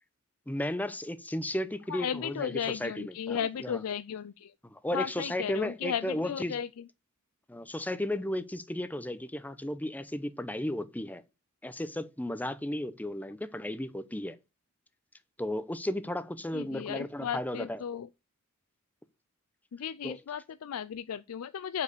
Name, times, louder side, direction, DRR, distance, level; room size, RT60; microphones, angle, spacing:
voice 1, 0.5-3.8 4.6-6.6 7.5-11.2 11.6-14.4 15.4-17.8 20.0-20.2, left 1 dB, 10° left, 0.7 m, -34 dB
voice 2, 1.9-4.5 4.9-6.7 16.5-18.1 19.7-21.8, left 8 dB, 85° left, 0.4 m, -35 dB
8.3 x 4.8 x 6.7 m
head